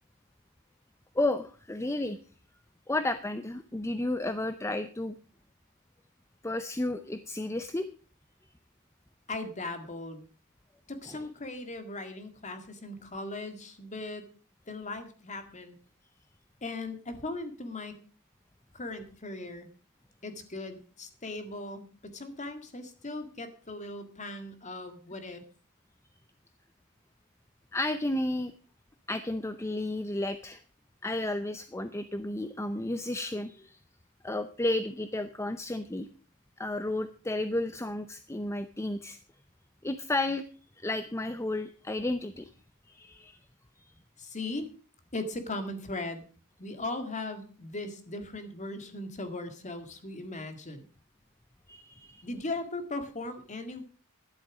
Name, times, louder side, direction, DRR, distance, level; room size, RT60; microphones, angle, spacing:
voice 1, 1.2-2.2 2.9-5.1 6.4-7.9 27.7-28.5 29.1-30.6 31.0-33.8 34.2-36.1 36.6-39.2 39.8-40.4 40.8-42.5 42.9-43.4 51.7-52.2, left 2 dB, 10° left, 10 dB, 0.6 m, -32 dB
voice 2, 9.3-10.3 10.9-14.3 14.7-15.8 16.6-18.0 18.7-19.7 20.2-25.4 44.2-44.7 45.1-46.2 46.6-50.9 52.2-53.8, left 2 dB, 35° left, 8 dB, 2.0 m, -38 dB
12.5 x 11.0 x 4.9 m, 0.39 s
head